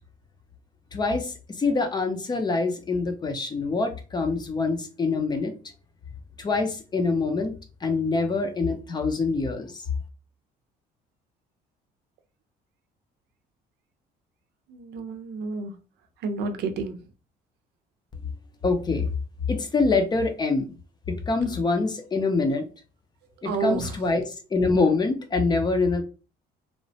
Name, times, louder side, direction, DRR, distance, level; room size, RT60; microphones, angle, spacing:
voice 1, 0.9-5.5 6.4-7.5 7.8-9.8 18.6-19.1 19.5-20.7 21.1-22.7 23.4-26.0, left 3 dB, 25° left, 0.5 m, -25 dB
voice 2, 14.7-15.7 16.2-16.9 23.5-23.9, right 4 dB, 80° right, 0.6 m, -29 dB
3.0 x 2.1 x 2.7 m
cardioid pair, 110°, 17 cm